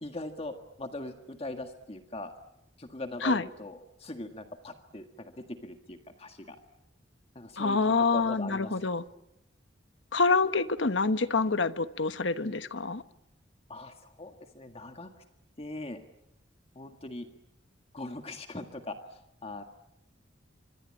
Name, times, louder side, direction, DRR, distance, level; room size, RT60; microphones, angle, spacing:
voice 1, 0.0-2.3 2.8-6.6 7.4-8.7 13.7-15.1 15.6-16.0 16.8-17.3 17.9-19.6, left 2 dB, 30° left, 1.8 m, -41 dB
voice 2, 7.6-9.0 10.1-13.0, left 4 dB, 75° left, 1.2 m, -26 dB
26.5 x 25.0 x 8.8 m
head